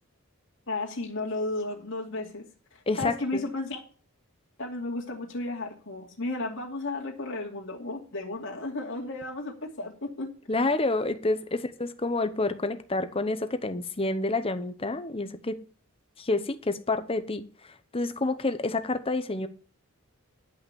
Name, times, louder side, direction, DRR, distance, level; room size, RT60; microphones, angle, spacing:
voice 1, 0.7-2.4 3.0-3.8 4.6-10.3, left 2 dB, 60° left, 2.5 m, -33 dB
voice 2, 2.9-3.4 10.5-15.6 16.2-17.5 17.9-19.5, left 2 dB, 25° left, 0.9 m, -28 dB
11.0 x 5.7 x 7.1 m
head